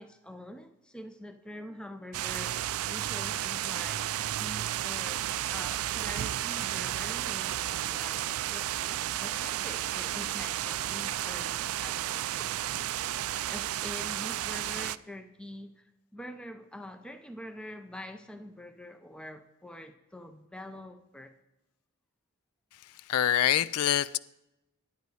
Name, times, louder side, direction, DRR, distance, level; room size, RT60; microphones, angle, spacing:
voice 1, 0.0-5.2 5.5-8.9 9.2-21.3, left 1 dB, 5° left, 7 dB, 0.6 m, -45 dB
sound 1, 2.1-15.0, right 12 dB, 80° right, 0.3 m, -32 dB
voice 2, 23.1-24.2, left 11 dB, 85° left, 18 dB, 0.4 m, -25 dB
11.0 x 9.3 x 4.9 m, 0.92 s
head